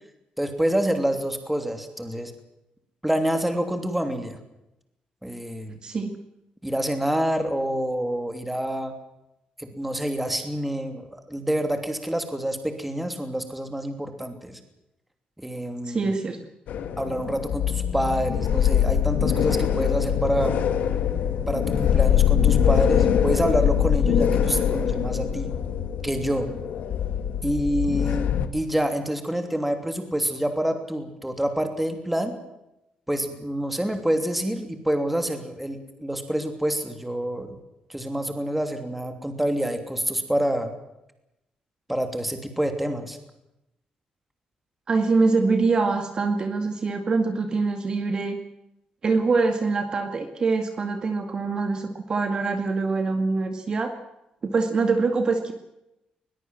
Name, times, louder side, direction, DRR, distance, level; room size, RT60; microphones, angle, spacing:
voice 1, 0.4-2.3 3.0-4.4 5.2-5.8 6.6-8.9 9.6-14.6 15.4-16.1 17.0-20.5 21.5-25.5 26.0-26.5 27.4-32.3 33.1-37.6 37.9-40.7 41.9-43.2, right 1 dB, 5° right, 6 dB, 3.0 m, -27 dB
voice 2, 5.8-6.2 15.8-16.4 44.9-48.4 49.0-53.9 54.4-55.5, right 4 dB, 30° right, 6 dB, 2.1 m, -24 dB
sound 1, 16.7-28.5, left 9 dB, 75° left, 2.1 m, -23 dB
21.5 x 21.0 x 7.7 m, 0.88 s
cardioid pair, 165°, 3 cm